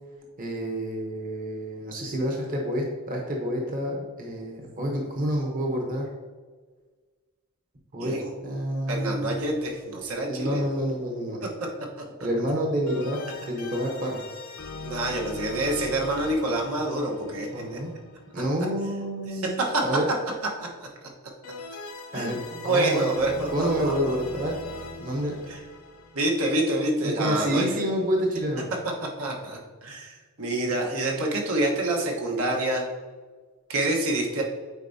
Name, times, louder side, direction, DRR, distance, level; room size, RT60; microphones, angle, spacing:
voice 1, 0.4-6.1 7.9-8.2 8.4-9.4 10.3-11.4 12.2-13.2 13.5-14.2 17.5-17.9 18.3-20.1 22.1-23.1 23.5-24.5 25.0-25.5 27.0-28.7, equal, 40° right, 0 dB, 0.9 m, -28 dB
voice 2, 8.0-8.3 8.9-10.7 11.6-11.7 14.8-17.8 19.3-19.8 20.8-20.9 22.1-24.1 26.1-27.6 29.2-32.8 33.7-34.4, right 1 dB, 75° right, 0 dB, 1.2 m, -27 dB
sound 1, 9.3-10.3 12.9-18.9 21.4-27.1, left 3 dB, 75° left, 0.9 m, -41 dB
8.2 x 4.5 x 2.7 m, 1.4 s
head